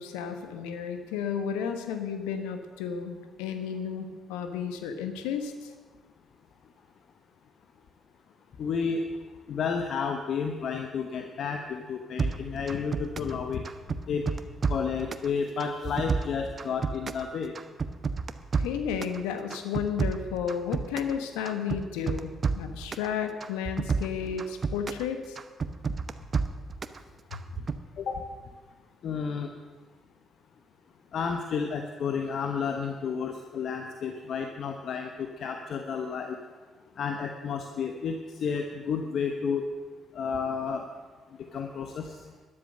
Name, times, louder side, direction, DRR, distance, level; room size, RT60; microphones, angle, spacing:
voice 1, 0.0-5.7 18.6-25.4, left 7 dB, 80° left, 7 dB, 1.3 m, -33 dB
voice 2, 8.6-9.0 9.5-13.6 14.1-14.2 14.7-17.6 28.0-28.2 29.0-29.5 31.1-36.4 37.0-39.7 40.1-40.8 41.5-42.2, left 6 dB, 60° left, 4 dB, 1.0 m, -31 dB
sound 1, 12.2-13.4 13.6-15.3 15.6-17.3 17.5-19.2 19.5-21.2 21.5-23.1 23.4-25.1 25.4-27.0 27.3-27.8, right 5 dB, 45° right, 0.8 m, -30 dB
12.5 x 11.0 x 6.6 m, 1.4 s
hypercardioid pair, 50°, 0 cm